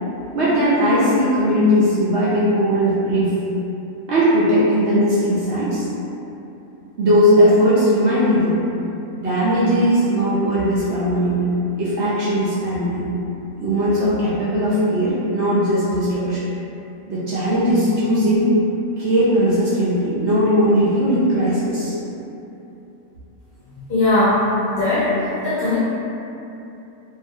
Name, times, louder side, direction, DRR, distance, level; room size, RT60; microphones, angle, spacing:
voice 1, 0.3-3.3 4.1-5.9 7.0-8.6 9.2-11.4 11.8-13.1 13.6-16.4 17.1-18.5 19.0-21.9, equal, 65° right, -10 dB, 0.7 m, -18 dB
voice 2, 23.7-25.1 25.4-25.8, left 2 dB, 50° left, -13 dB, 0.6 m, -19 dB
2.5 x 2.2 x 2.7 m, 2.9 s
omnidirectional pair, 1.5 m